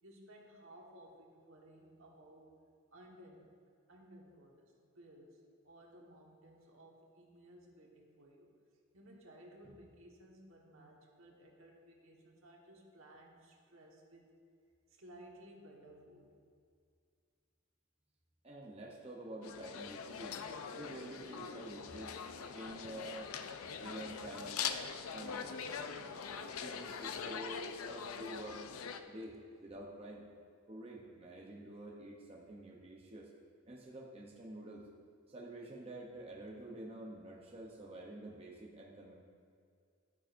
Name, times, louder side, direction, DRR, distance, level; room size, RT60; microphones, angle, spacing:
voice 1, 0.0-2.5 2.9-3.5 3.9-8.5 8.9-14.3 14.9-16.3, right 1 dB, 70° right, -1 dB, 1.4 m, -58 dB
voice 2, 18.4-20.4 20.7-22.2 22.5-23.3 23.6-24.6 25.1-25.7 26.0-28.6 29.1-30.2 30.7-33.3 33.7-34.9 35.3-39.1, right 1 dB, 30° right, -2 dB, 0.7 m, -48 dB
sound 1, 19.4-29.0, left 6 dB, 80° left, 0.5 m, -43 dB
11.5 x 9.5 x 2.6 m, 2.2 s
head